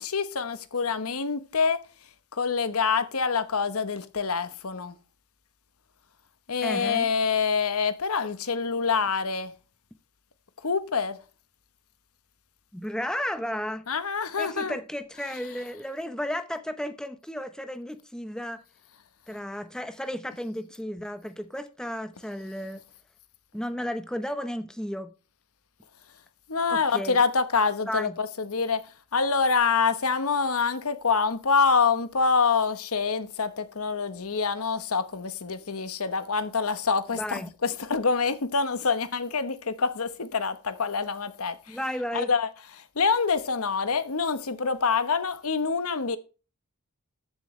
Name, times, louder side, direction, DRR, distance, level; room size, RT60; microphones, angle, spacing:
voice 1, 0.0-1.8 2.3-5.0 6.5-9.5 10.6-11.2 13.9-14.8 26.5-41.8 42.1-46.2, left 5 dB, 75° left, 1.1 m, -26 dB
voice 2, 6.6-7.1 12.7-13.8 14.4-18.6 19.3-22.8 23.5-25.1 26.7-27.2 27.9-28.1 37.2-37.5 41.7-42.3, equal, 5° left, 0.8 m, -33 dB
14.0 x 7.7 x 3.2 m
head